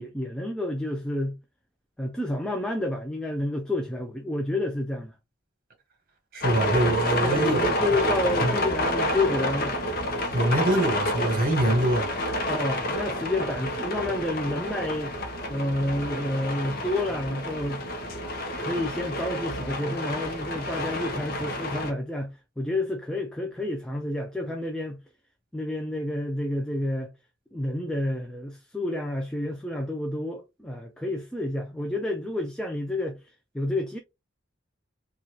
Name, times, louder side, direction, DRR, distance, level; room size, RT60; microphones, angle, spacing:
voice 1, 0.0-1.4 2.0-5.1 7.2-9.8 12.5-15.2 15.5-17.8 18.6-25.0 25.5-27.1 27.5-33.2 33.5-34.0, left 1 dB, 5° left, 0.4 m, -29 dB
voice 2, 6.3-7.7 8.4-8.5 10.3-12.1, right 1 dB, 50° right, 1.2 m, -24 dB
sound 1, 6.4-21.9, left 1 dB, 50° left, 0.8 m, -29 dB
4.0 x 2.3 x 2.9 m
head